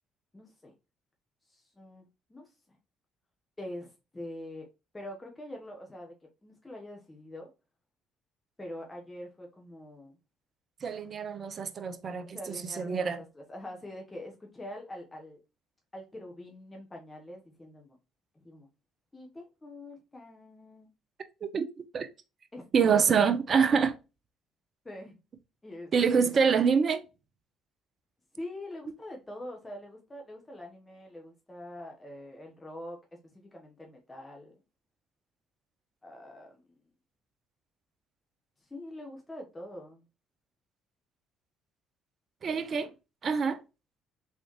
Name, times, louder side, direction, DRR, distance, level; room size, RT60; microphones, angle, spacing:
voice 1, 0.3-0.7 1.5-2.8 3.6-4.7 4.9-6.1 6.4-7.5 8.6-10.2 12.3-15.4 15.9-18.0 18.3-18.7 19.1-20.9 22.5-23.0 24.8-25.2 25.6-26.0 26.2-26.4 28.3-34.6 36.0-36.7 38.7-40.0, left 1 dB, 20° left, 1.2 m, -44 dB
voice 2, 10.8-12.4 12.8-13.2 21.4-22.1 22.7-24.0 25.9-27.0 42.4-42.9 43.2-43.6, right 6 dB, 45° right, 0.6 m, -26 dB
3.7 x 3.2 x 3.0 m
hypercardioid pair, 50°, 0 cm